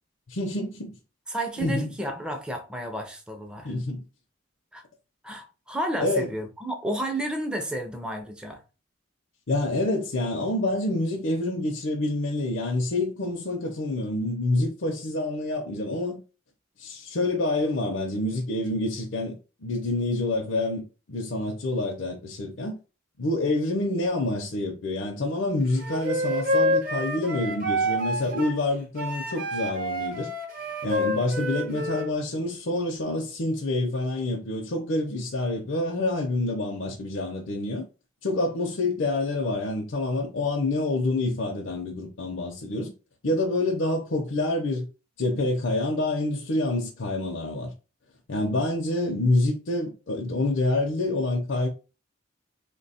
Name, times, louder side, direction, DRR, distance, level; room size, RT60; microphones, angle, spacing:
voice 1, 0.3-1.0 1.6-1.9 3.6-4.0 6.0-6.3 9.5-16.2 16.8-22.8 23.2-30.3 30.8-37.8 38.2-42.9 43.2-44.9 45.2-47.7 48.3-51.7, left 2 dB, 70° left, 0.6 m, -27 dB
voice 2, 1.3-3.7 4.7-4.8 5.2-8.6, right 1 dB, 5° right, 0.4 m, -32 dB
Wind instrument woodwind instrument, 25.8-28.6 29.0-32.1, equal, 45° right, 0.7 m, -28 dB
3.1 x 2.2 x 4.1 m
head